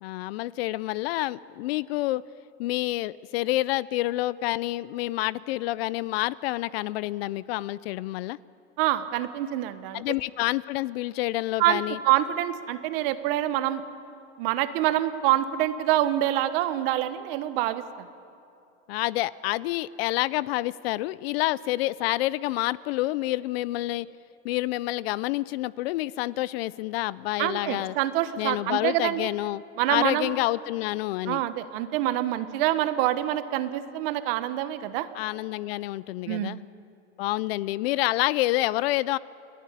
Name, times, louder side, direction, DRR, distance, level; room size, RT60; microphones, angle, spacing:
voice 1, 0.0-2.2 2.6-8.4 9.9-12.0 18.9-24.1 24.4-27.9 28.4-29.6 29.9-31.4 35.1-36.6 37.2-39.2, left 17 dB, 60° left, 20 dB, 0.6 m, -28 dB
voice 2, 8.8-10.0 11.6-13.8 14.4-17.8 27.4-29.3 29.8-30.4 31.2-35.1 36.3-36.6, right 13 dB, 55° right, 11 dB, 1.4 m, -26 dB
30.0 x 11.0 x 9.9 m, 2.6 s
supercardioid pair, 140°, 35 cm